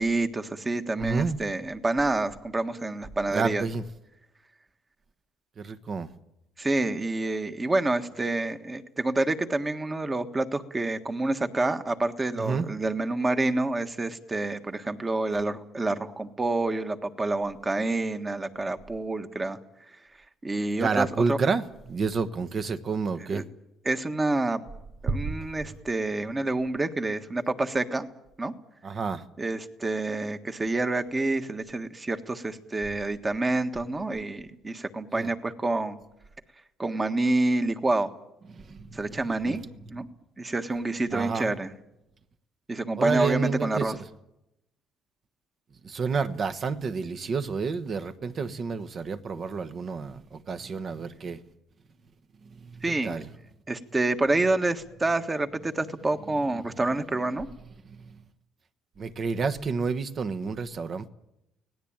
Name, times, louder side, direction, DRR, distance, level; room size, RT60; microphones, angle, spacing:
voice 1, 0.0-3.6 6.6-19.6 20.4-21.4 23.3-23.4 23.8-24.7 25.0-28.1 28.4-28.5 29.4-36.0 36.8-38.1 38.9-39.6 39.9-40.1 40.4-41.7 42.7-43.9 52.8-53.2 53.7-57.5, right 2 dB, 20° right, 1.6 m, -28 dB
voice 2, 1.0-1.4 3.3-3.8 5.6-6.1 12.4-12.7 20.8-23.4 25.1-25.2 28.8-29.2 35.1-35.3 38.7-39.0 39.5-39.6 41.1-41.5 43.0-44.0 45.8-51.4 52.6-53.2 59.0-61.1, right 5 dB, 40° right, 1.3 m, -29 dB
24.5 x 18.0 x 8.9 m
cardioid pair, 120°, 0 cm